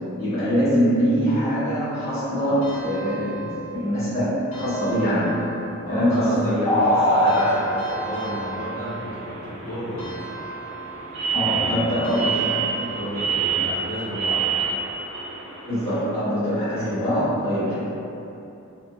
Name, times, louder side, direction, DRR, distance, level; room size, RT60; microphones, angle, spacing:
voice 1, 0.2-5.3 5.9-7.5 7.8-8.0 11.3-12.7 15.7-17.7, equal, 15° left, -17 dB, 1.5 m, -22 dB
sound 1, 2.6-3.9 4.5-5.8 7.3-9.4 10.0-11.3 12.0-13.3, right 4 dB, 65° left, 0.7 m, -38 dB
voice 2, 5.8-10.0 11.4-12.0 12.7-14.6 16.7-16.9, equal, 35° left, -17 dB, 0.8 m, -33 dB
sound 2, 6.5-16.0, right 6 dB, 60° right, 0.6 m, -29 dB
3.2 x 2.1 x 2.7 m, 2.9 s
head